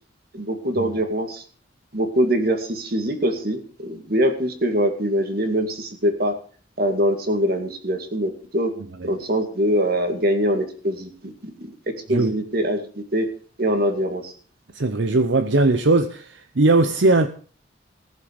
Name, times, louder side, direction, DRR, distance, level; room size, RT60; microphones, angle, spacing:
voice 1, 0.3-1.4 1.9-6.3 6.8-8.7 9.0-11.3 11.6-11.7 12.1-12.8 13.1-13.3 13.6-14.3, equal, 50° right, 2.2 m, -23 dB
voice 2, 14.7-17.3, right 2 dB, 70° right, 0.8 m, -19 dB
18.5 x 7.6 x 5.2 m
head